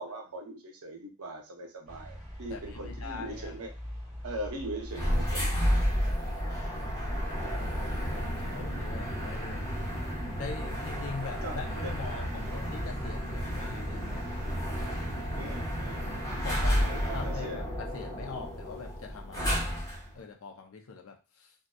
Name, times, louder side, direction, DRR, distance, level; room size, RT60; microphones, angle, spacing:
voice 1, 0.0-3.7 4.2-5.5 6.0-6.3 11.2-12.0 15.3-16.1 16.8-17.7, right 1 dB, 75° right, 2 dB, 0.7 m, -41 dB
sound 1, 1.9-14.5, equal, ahead, 1.3 m, -44 dB
voice 2, 2.5-3.5 6.0-7.1 7.7-9.6 10.3-14.2 14.8-15.6 16.4-21.5, left 4 dB, 65° left, 3 dB, 0.5 m, -43 dB
sound 2, 4.9-20.1, equal, 15° left, 1.1 m, -32 dB
2.6 x 2.3 x 2.2 m, 0.31 s
head